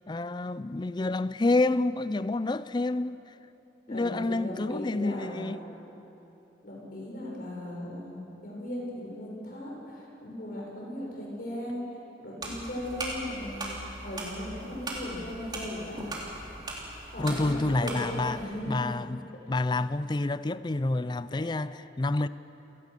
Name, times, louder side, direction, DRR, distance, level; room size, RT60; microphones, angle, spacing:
voice 1, 0.1-3.2 3.9-5.6 17.2-18.4 18.7-19.2 19.5-22.3, left 2 dB, 25° left, 0.4 m, -28 dB
voice 2, 3.9-5.5 6.6-11.8 12.2-13.7 14.0-16.0 17.1-18.8 21.3-21.4, left 1 dB, 50° left, 6.8 m, -37 dB
sound 1, 12.4-18.4, right 2 dB, 25° right, 3.7 m, -39 dB
29.5 x 18.0 x 6.8 m
head